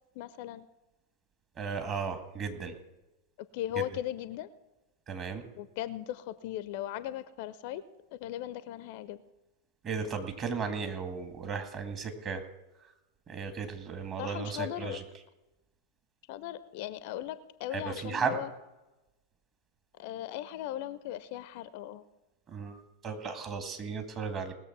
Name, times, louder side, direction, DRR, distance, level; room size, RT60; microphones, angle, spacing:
voice 1, 0.1-0.7 3.4-4.5 5.5-7.8 8.1-9.2 14.2-15.0 16.3-18.5 19.9-22.0, left 13 dB, 50° left, 15 dB, 0.6 m, -38 dB
voice 2, 1.6-2.8 5.1-5.4 9.8-12.4 13.3-15.0 17.7-18.4 22.5-24.5, right 5 dB, 30° right, 6 dB, 1.9 m, -35 dB
19.5 x 6.9 x 5.9 m, 1.0 s
figure-of-eight pair, 90°, 0 cm